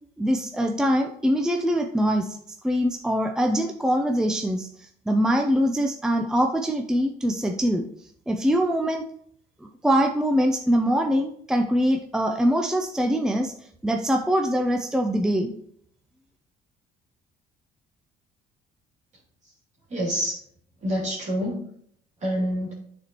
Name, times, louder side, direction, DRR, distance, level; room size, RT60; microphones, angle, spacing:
voice 1, 0.2-2.4 2.6-7.9 8.3-9.0 9.6-13.5 13.8-15.5, equal, 5° right, 3 dB, 0.5 m, -23 dB
voice 2, 19.9-20.3 20.8-21.6 22.2-22.7, equal, 45° right, -4 dB, 2.5 m, -26 dB
9.2 x 4.2 x 3.0 m, 0.65 s
cardioid pair, 110°, 17 cm